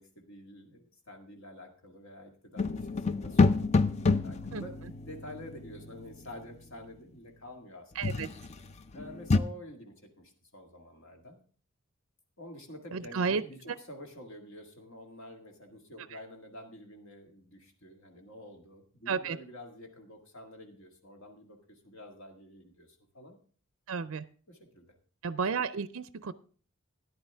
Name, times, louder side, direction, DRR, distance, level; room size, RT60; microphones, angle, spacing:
voice 1, 0.0-4.7 5.1-8.3 8.9-11.4 12.4-23.4 24.5-24.9, left 1 dB, 70° left, 2 dB, 1.9 m, -49 dB
sound 1, 2.6-6.4 8.0-8.6 9.0-9.4, left 3 dB, 30° left, 0.5 m, -28 dB
voice 2, 8.0-8.3 12.9-13.4 19.1-19.4 23.9-24.2 25.2-26.3, right 5 dB, 80° right, 14 dB, 0.5 m, -32 dB
13.0 x 10.5 x 3.5 m, 0.42 s
head